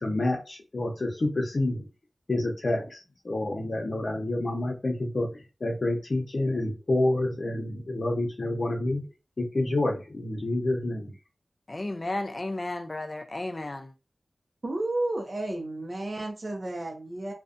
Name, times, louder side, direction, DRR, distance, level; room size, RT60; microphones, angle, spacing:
voice 1, 0.0-1.8 2.3-3.0 3.2-5.3 5.6-9.0 9.4-11.1, left 2 dB, 60° left, 0.7 m, -28 dB
voice 2, 11.7-13.9, left 2 dB, 40° left, 0.4 m, -33 dB
voice 3, 14.6-17.3, right 2 dB, 50° right, 0.5 m, -32 dB
2.6 x 2.1 x 2.5 m
wide cardioid pair, 65°, 0 cm